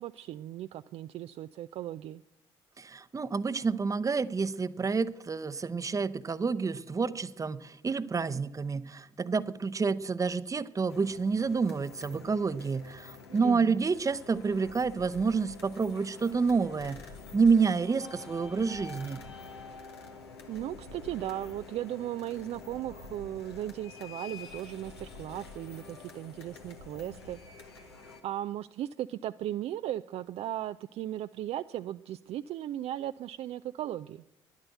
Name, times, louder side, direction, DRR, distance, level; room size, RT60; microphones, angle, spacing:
voice 1, 0.0-2.2 13.4-13.8 20.5-27.4 28.2-34.2, right 12 dB, 50° right, 11 dB, 0.4 m, -37 dB
voice 2, 2.8-19.2, right 5 dB, 25° right, 12 dB, 0.8 m, -29 dB
sound 1, 10.9-28.2, left 4 dB, 85° left, 1.4 m, -48 dB
12.0 x 11.0 x 7.9 m, 0.87 s
figure-of-eight pair, 50°, 13 cm